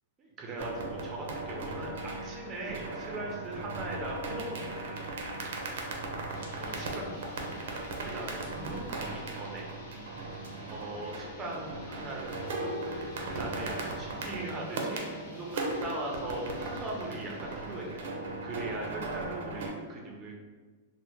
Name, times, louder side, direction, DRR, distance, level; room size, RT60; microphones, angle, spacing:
voice 1, 0.2-5.5 6.6-9.7 10.7-12.3 12.6-12.7 13.3-18.1 18.4-20.4, right 2 dB, 20° right, -1 dB, 0.5 m, -40 dB
sound 1, 0.6-19.7, right 2 dB, 70° right, 0.5 m, -38 dB
sound 2, 6.3-18.8, left 2 dB, 60° left, 0.7 m, -51 dB
2.8 x 2.0 x 3.4 m, 1.4 s
supercardioid pair, 150°, 0 cm